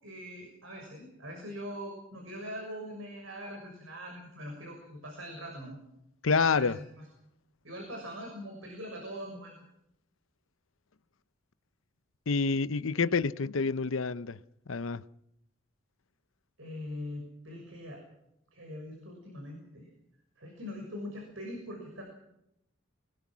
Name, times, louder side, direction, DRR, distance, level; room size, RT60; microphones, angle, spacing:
voice 1, 0.0-5.8 6.3-7.1 7.6-9.6 12.9-13.1 13.4-13.5 16.6-18.0 18.5-19.9 20.4-22.0, equal, 70° right, 6.5 m, -42 dB
voice 2, 6.2-6.8 12.3-14.4 14.7-15.0, left 4 dB, 75° left, 0.7 m, -28 dB
25.0 x 20.0 x 6.2 m
head